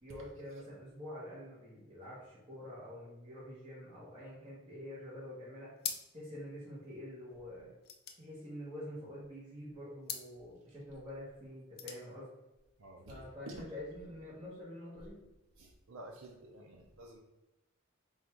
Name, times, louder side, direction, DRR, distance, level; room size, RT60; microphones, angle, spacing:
voice 1, 0.0-5.8 6.1-7.7 8.2-12.3 13.0-15.2, left 1 dB, 25° right, -10 dB, 1.3 m, -47 dB
sound 1, 5.8-6.4 6.7-6.8 7.0-9.2 10.0-10.4 11.5-12.1, left 7 dB, 50° left, 0.5 m, -43 dB
voice 2, 12.8-13.6 15.6-17.2, right 1 dB, 85° right, 0 dB, 0.6 m, -50 dB
3.9 x 2.4 x 4.4 m, 1.0 s
head